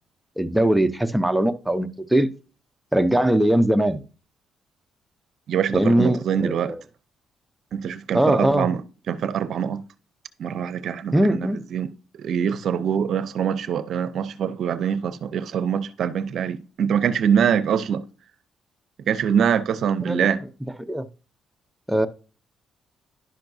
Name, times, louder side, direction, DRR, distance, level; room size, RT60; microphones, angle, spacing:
voice 1, 0.4-2.3 2.9-4.0 5.7-6.8 8.1-8.7 11.1-11.6 20.1-20.3 20.9-21.0 21.9-22.1, right 1 dB, 5° right, 0.7 m, -20 dB
voice 2, 5.5-6.7 7.7-8.8 9.1-9.8 10.4-11.9 12.2-18.0 19.1-20.4, right 8 dB, 65° right, 0.6 m, -24 dB
11.0 x 5.8 x 2.7 m
cardioid pair, 90°, 0 cm